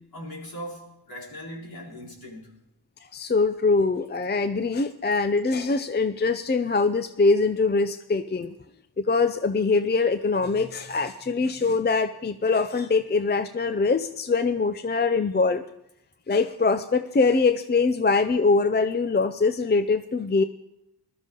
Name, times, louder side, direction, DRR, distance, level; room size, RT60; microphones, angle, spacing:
voice 1, 0.0-2.5, equal, 65° left, -2 dB, 4.2 m, -39 dB
voice 2, 3.1-8.5 9.0-15.6 16.3-20.4, left 4 dB, 25° left, 9 dB, 0.5 m, -23 dB
20.5 x 12.5 x 3.8 m, 0.81 s
wide cardioid pair, 130°, 40 cm